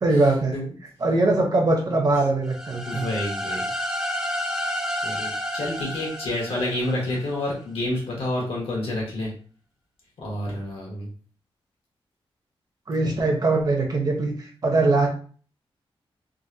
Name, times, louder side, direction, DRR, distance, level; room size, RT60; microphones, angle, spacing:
voice 1, 0.0-0.5 1.0-3.1 12.9-15.1, right 2 dB, 40° right, 1 dB, 0.8 m, -21 dB
sound 1, 2.5-7.3, equal, 5° right, 0.6 m, -30 dB
voice 2, 2.8-3.7 5.0-9.3 10.2-11.1, left 1 dB, 75° left, -2 dB, 1.4 m, -29 dB
3.7 x 2.2 x 2.7 m, 0.42 s
wide cardioid pair, 155°, 10 cm